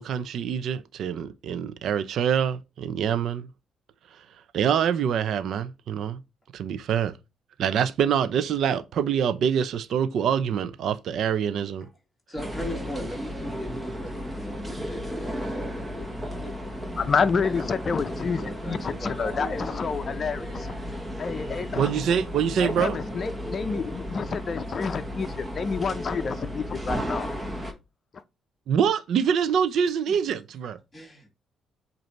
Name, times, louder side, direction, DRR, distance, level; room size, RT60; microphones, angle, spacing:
voice 1, 0.0-3.5 4.1-4.3 4.5-6.2 6.5-7.2 7.6-11.9 21.7-23.0 28.7-30.8, right 8 dB, 70° right, 0.6 m, -25 dB
voice 2, 12.3-17.0 17.4-17.8 18.1-20.3 30.1-30.3 30.9-31.3, left 1 dB, 5° left, 2.4 m, -40 dB
sound 1, 12.4-27.7, equal, 15° right, 1.4 m, -34 dB
voice 3, 17.0-20.7 21.2-21.9 22.6-27.3 28.1-28.2, left 5 dB, 45° left, 0.6 m, -29 dB
7.9 x 2.7 x 4.4 m
cardioid pair, 90°, 0 cm